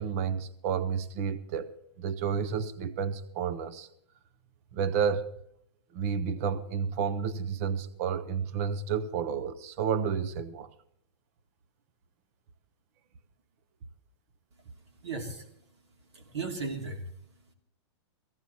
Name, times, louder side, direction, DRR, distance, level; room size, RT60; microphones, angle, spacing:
voice 1, 0.0-3.9 4.7-5.3 5.9-10.7, right 7 dB, 30° right, 0.7 m, -31 dB
voice 2, 14.9-15.5 16.1-17.5, right 3 dB, 70° right, 3.1 m, -37 dB
18.5 x 16.0 x 4.2 m
supercardioid pair, 175°, 15 cm